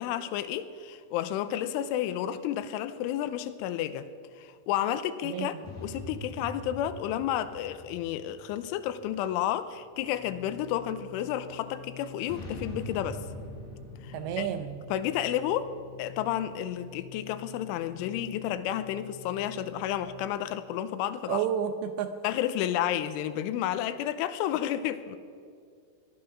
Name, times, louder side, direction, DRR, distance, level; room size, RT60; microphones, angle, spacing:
voice 1, 0.0-4.1 4.4-5.5 5.8-13.2 14.0-14.5 14.9-15.7 16.0-21.4 22.2-25.2, left 11 dB, 85° left, 12 dB, 3.1 m, -31 dB
voice 2, 5.2-5.6 14.1-14.8 21.3-22.1, right 8 dB, 80° right, 8 dB, 2.7 m, -31 dB
sound 1, 5.6-9.3 12.2-16.0, equal, 50° left, 3.8 m, -44 dB
Organ, 9.8-20.5, left 5 dB, 15° left, 5.0 m, -48 dB
19.0 x 12.5 x 6.0 m, 2.3 s
omnidirectional pair, 5.6 m